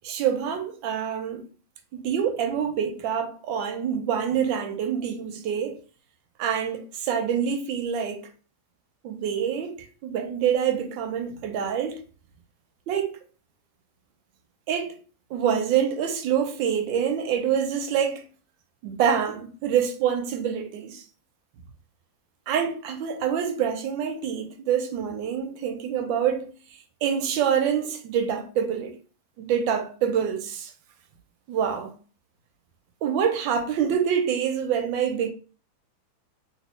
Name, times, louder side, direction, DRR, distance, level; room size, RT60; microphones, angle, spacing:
voice 1, 0.0-1.4 1.9-5.8 6.4-8.3 9.0-12.0 12.9-13.2 14.7-14.9 15.3-18.2 18.8-21.0 22.5-26.5 27.0-28.9 29.4-30.7 31.5-31.9 33.0-35.3, right 8 dB, 75° right, 1.3 m, -26 dB
3.0 x 2.9 x 3.0 m
omnidirectional pair, 2.2 m